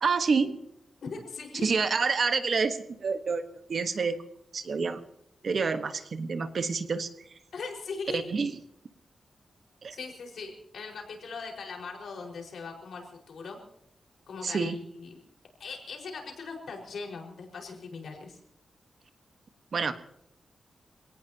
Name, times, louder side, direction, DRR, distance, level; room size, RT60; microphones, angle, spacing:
voice 1, 0.0-0.6 1.6-3.4 3.7-4.2 4.5-5.0 5.4-7.1 8.1-8.5 9.8-10.0 14.4-14.8 19.7-19.9, right 5 dB, 50° right, 9 dB, 1.3 m, -28 dB
voice 2, 1.0-1.7 7.5-8.3 9.9-13.6 14.3-15.1 15.6-18.4, left 4 dB, 70° left, 1 dB, 4.9 m, -40 dB
27.0 x 18.5 x 2.9 m, 0.76 s
wide cardioid pair, 175°, 0 cm